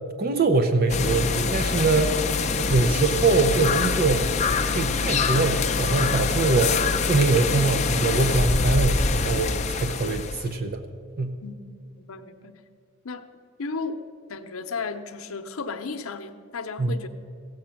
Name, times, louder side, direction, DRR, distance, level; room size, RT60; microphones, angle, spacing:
voice 1, 0.2-2.2 2.7-4.3 4.7-6.8 7.1-10.8 11.2-11.4 16.8-17.0, right 3 dB, 45° right, 7 dB, 0.6 m, -23 dB
sound 1, 0.9-10.5, left 4 dB, 35° left, 0.6 m, -25 dB
voice 2, 11.9-12.6 13.0-13.3 13.6-14.0 14.3-17.1, left 4 dB, 80° left, 8 dB, 0.7 m, -34 dB
16.0 x 7.7 x 5.8 m, 2.2 s
head